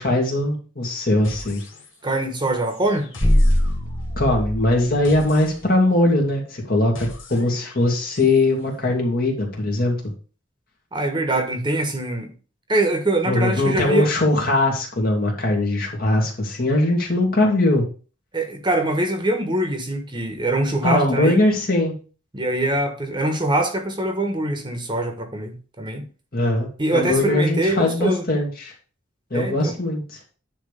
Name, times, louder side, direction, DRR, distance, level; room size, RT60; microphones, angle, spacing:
voice 1, 0.0-1.6 4.2-10.0 13.3-17.8 20.8-21.9 26.3-28.7 29.3-30.2, left 2 dB, 50° left, 2.4 m, -20 dB
sound 1, 1.2-2.2 2.4-8.4, left 1 dB, 85° left, 2.4 m, -42 dB
voice 2, 2.0-3.1 10.9-12.3 12.7-14.1 18.3-21.4 22.3-26.0 26.8-28.2 29.3-29.7, right 2 dB, 25° right, 1.3 m, -23 dB
sound 2, 3.2-5.6, equal, 25° left, 1.0 m, -22 dB
9.9 x 3.3 x 6.7 m
head